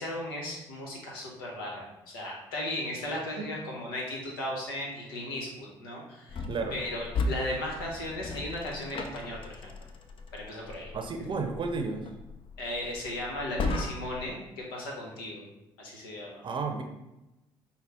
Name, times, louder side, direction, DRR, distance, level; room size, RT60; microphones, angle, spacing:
voice 1, 0.0-6.4 6.7-9.7 10.3-10.9 12.6-14.4 14.7-15.4 15.8-16.4, left 1 dB, 85° left, -2 dB, 1.0 m, -36 dB
sound 1, 6.3-14.3, left 3 dB, 50° left, 0.5 m, -37 dB
voice 2, 6.5-6.8 10.9-12.1 16.4-16.8, right 4 dB, 45° right, 4 dB, 0.6 m, -32 dB
5.5 x 2.2 x 3.5 m, 0.95 s
hypercardioid pair, 55°, 12 cm